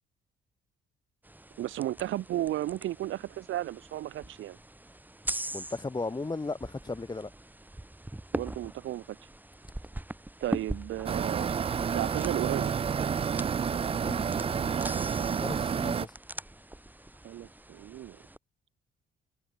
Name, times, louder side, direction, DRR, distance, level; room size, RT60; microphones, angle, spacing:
sound 1, 1.2-18.4, right 1 dB, 10° right, 5.4 m, -42 dB
voice 1, 1.6-4.6 8.3-9.2 10.4-11.5 11.9-12.7 17.2-18.2, right 14 dB, 80° right, 1.7 m, -34 dB
voice 2, 5.5-7.3 13.9-14.8 15.1-16.1, left 3 dB, 20° left, 2.7 m, -37 dB
sound 2, 11.1-16.1, right 7 dB, 30° right, 0.4 m, -29 dB
cardioid pair, 90°, 20 cm